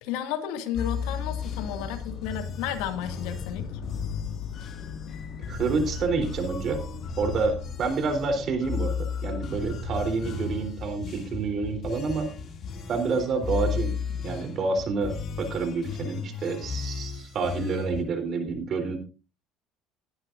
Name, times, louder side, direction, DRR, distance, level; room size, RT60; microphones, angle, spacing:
voice 1, 0.0-3.7 14.1-14.2, left 10 dB, 85° left, 2.1 m, -33 dB
sound 1, 0.7-18.0, left 5 dB, 45° left, 2.5 m, -34 dB
sound 2, 0.8-8.6, left 6 dB, 65° left, 2.1 m, -41 dB
voice 2, 5.5-6.8 7.2-12.3 12.9-13.9 14.2-19.0, right 4 dB, 45° right, 3.6 m, -28 dB
20.5 x 11.0 x 2.6 m
cardioid pair, 115°, 0 cm